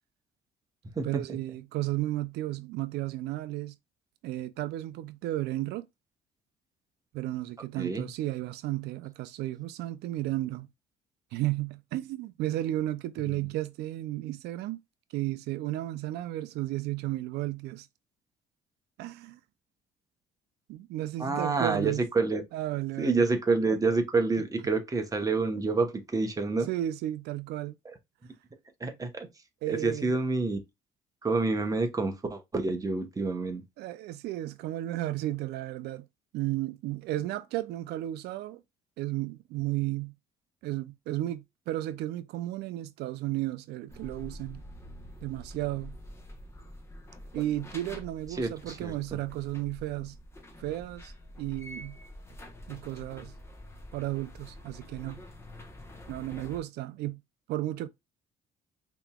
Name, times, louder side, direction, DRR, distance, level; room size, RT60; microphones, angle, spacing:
voice 1, 1.0-3.7 4.2-5.9 7.1-10.7 11.3-14.8 15.1-17.9 19.0-19.4 20.7-22.0 22.5-23.2 24.4-24.5 26.7-27.7 29.6-30.2 33.8-36.1 36.3-38.6 39.0-40.1 40.6-44.6 45.2-46.0 47.3-50.2 50.6-52.0 52.7-53.4 53.9-55.2 56.1-57.2 57.5-57.9, right 15 dB, 80° right, 0.4 m, -33 dB
voice 2, 7.8-8.1 21.2-22.4 23.0-26.7 28.8-29.3 29.7-30.6 31.2-33.6 48.3-48.9, right 3 dB, 20° right, 0.9 m, -28 dB
sound 1, 43.9-56.6, left 1 dB, 15° left, 0.9 m, -47 dB
5.1 x 3.0 x 2.3 m
cardioid pair, 110°, 17 cm